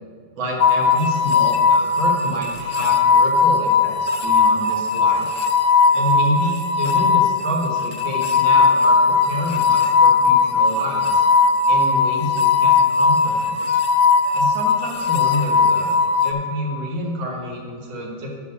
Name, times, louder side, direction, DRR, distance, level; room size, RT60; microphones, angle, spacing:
voice 1, 0.4-5.3 5.9-11.2 11.7-13.6 14.3-16.0 16.2-18.4, equal, 85° right, -2 dB, 2.3 m, -28 dB
sound 1, 0.6-16.3, left 5 dB, 70° left, 0.7 m, -18 dB
11.0 x 4.9 x 5.5 m, 2.1 s
omnidirectional pair, 2.1 m